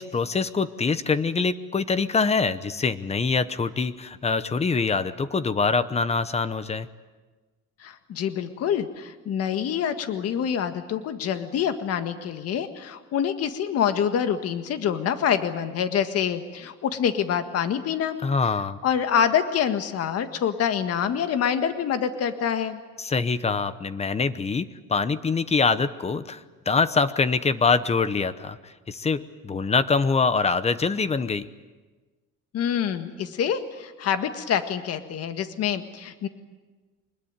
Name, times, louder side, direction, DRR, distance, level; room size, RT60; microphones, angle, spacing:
voice 1, 0.0-6.9 18.2-18.8 23.0-31.5, left 4 dB, 20° left, 14 dB, 0.9 m, -24 dB
voice 2, 7.8-18.2 18.8-22.8 32.5-36.3, left 8 dB, 55° left, 8 dB, 1.7 m, -26 dB
24.5 x 21.0 x 9.0 m, 1.3 s
cardioid pair, 140°, 29 cm